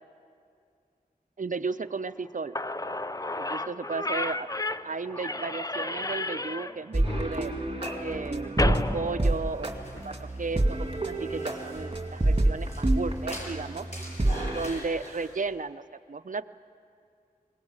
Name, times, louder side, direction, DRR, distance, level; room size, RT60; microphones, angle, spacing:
voice 1, 1.4-2.6 3.4-4.5 4.8-7.5 8.0-9.7 10.0-13.9 14.5-15.8 16.1-16.4, right 4 dB, 55° right, 11 dB, 0.6 m, -34 dB
Slam / Squeak, 2.2-2.3 2.5-10.0, left 2 dB, 20° left, 0.6 m, -32 dB
sound 1, 6.9-14.7, right 1 dB, 35° right, 2.1 m, -28 dB
sound 2, 9.3-15.4, equal, 45° left, 6.9 m, -45 dB
21.5 x 18.5 x 8.7 m, 2.4 s
wide cardioid pair, 40°, 16 cm